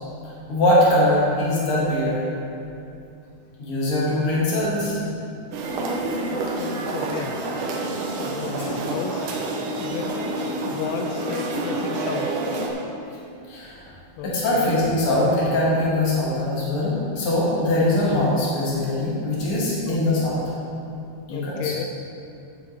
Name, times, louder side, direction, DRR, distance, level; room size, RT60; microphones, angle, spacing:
voice 1, 0.5-2.2 3.6-4.9 8.5-8.6 13.5-13.8 14.2-20.4 21.3-21.7, left 1 dB, 40° left, -7 dB, 2.6 m, -22 dB
sound 1, 5.5-12.7, right 2 dB, 70° right, 2.3 m, -28 dB
voice 2, 6.3-7.4 8.2-9.3 9.8-10.1 10.7-12.4 14.2-14.8 19.9-20.1 21.3-21.9, left 7 dB, 90° left, 6 dB, 2.5 m, -33 dB
9.3 x 8.2 x 4.3 m, 2.6 s
omnidirectional pair, 4.3 m